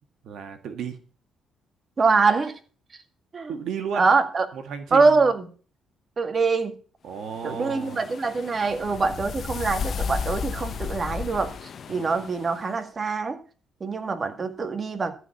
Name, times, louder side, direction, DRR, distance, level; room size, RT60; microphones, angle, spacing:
voice 1, 0.2-1.0 3.5-4.1 4.5-5.3 7.0-8.1 11.9-12.1, right 7 dB, 75° right, 1.8 m, -34 dB
voice 2, 2.0-2.6 3.3-3.5 4.0-4.5 4.9-5.4 6.2-6.8 7.4-13.4 13.8-15.1, right 4 dB, 35° right, 2.0 m, -24 dB
sound 1, 7.3-12.6, left 6 dB, 55° left, 1.0 m, -34 dB
14.0 x 4.9 x 8.4 m
cardioid pair, 90°, 0 cm